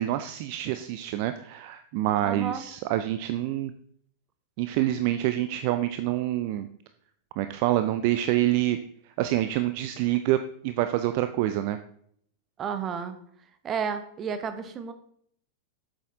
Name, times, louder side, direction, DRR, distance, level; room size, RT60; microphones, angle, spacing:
voice 1, 0.0-3.7 4.6-6.7 7.4-8.8 9.2-11.8, right 14 dB, 45° right, 9 dB, 0.5 m, -26 dB
voice 2, 2.2-2.7 12.6-13.2 13.6-14.9, right 7 dB, 25° right, 9 dB, 1.0 m, -32 dB
8.4 x 7.5 x 3.7 m, 0.65 s
figure-of-eight pair, 90°, 0 cm